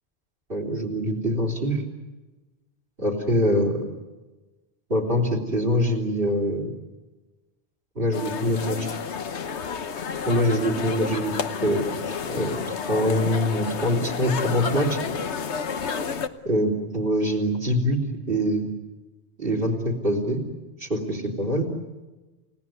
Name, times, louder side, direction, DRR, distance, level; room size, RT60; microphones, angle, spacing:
voice 1, 0.5-1.8 3.0-3.8 4.9-6.7 8.0-9.0 10.3-11.3 11.6-11.8 12.3-15.0 16.4-18.0 18.3-18.7 19.4-20.4 20.8-21.7, equal, 60° right, 2 dB, 4.0 m, -24 dB
sound 1, 8.1-16.3, left 6 dB, 90° left, 1.3 m, -30 dB
29.5 x 17.0 x 9.5 m, 1.2 s
omnidirectional pair, 1.1 m